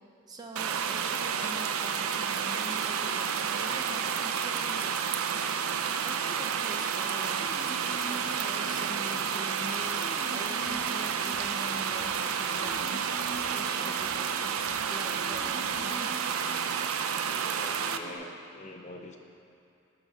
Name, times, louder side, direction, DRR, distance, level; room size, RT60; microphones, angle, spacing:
voice 1, 0.3-5.0 6.0-13.1 13.5-14.6 14.9-16.1, right 1 dB, 20° right, 1 dB, 0.4 m, -44 dB
sound 1, 0.6-18.0, right 7 dB, 85° right, 0.4 m, -30 dB
sound 2, 7.4-9.5 9.8-12.1 12.4-14.7 15.1-17.3 17.7-18.2, right 2 dB, 40° right, 1.4 m, -46 dB
sound 3, 10.7-16.0, right 1 dB, 55° right, 1.0 m, -56 dB
voice 2, 17.3-19.2, left 1 dB, 35° left, 3 dB, 0.5 m, -45 dB
11.0 x 4.0 x 6.1 m, 2.6 s
head